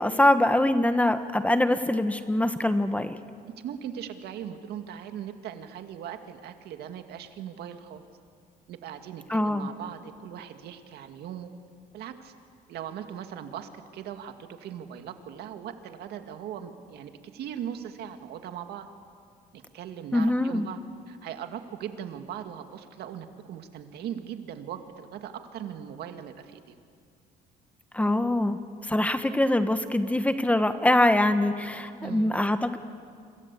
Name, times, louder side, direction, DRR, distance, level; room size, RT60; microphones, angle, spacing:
voice 1, 0.0-3.2 9.3-9.7 20.1-20.7 27.9-32.8, left 1 dB, 10° left, 9 dB, 1.3 m, -24 dB
voice 2, 3.6-8.0 8.7-11.5 11.9-12.3 12.7-18.9 19.5-20.8 21.1-26.7 32.0-32.3, right 9 dB, 75° right, 7 dB, 2.2 m, -39 dB
27.5 x 26.0 x 8.4 m, 2.2 s
cardioid pair, 110°, 17 cm